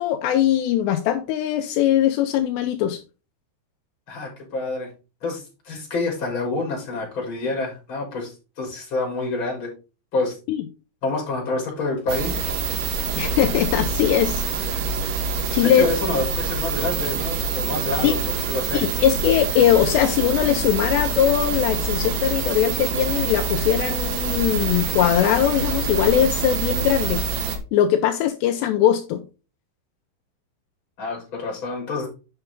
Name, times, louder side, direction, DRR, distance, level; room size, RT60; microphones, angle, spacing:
voice 1, 0.0-3.0 10.5-10.6 13.2-14.4 15.5-15.9 18.0-18.1 18.7-27.2 27.7-29.2, left 10 dB, 85° left, 7 dB, 2.6 m, -20 dB
voice 2, 4.1-4.9 5.2-9.7 10.1-10.4 11.0-12.4 15.6-18.2 18.5-18.8 31.0-32.1, left 3 dB, 25° left, -1 dB, 4.1 m, -27 dB
sound 1, 12.1-27.6, right 4 dB, 75° right, 3.4 m, -26 dB
8.9 x 5.7 x 3.6 m, 0.31 s
omnidirectional pair, 5.4 m